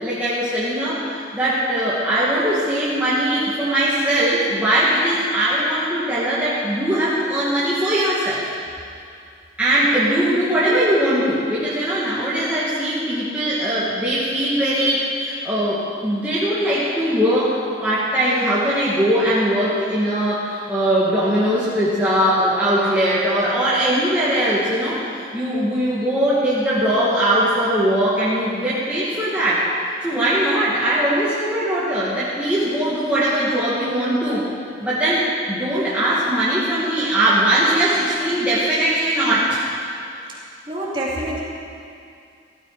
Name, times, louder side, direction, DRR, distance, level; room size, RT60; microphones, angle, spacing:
voice 1, 0.0-8.5 9.6-34.4 34.8-39.6, right 1 dB, 10° right, -11 dB, 2.3 m, -20 dB
voice 2, 40.7-41.4, right 1 dB, 25° right, -6 dB, 3.1 m, -26 dB
17.0 x 13.5 x 5.1 m, 2.4 s
head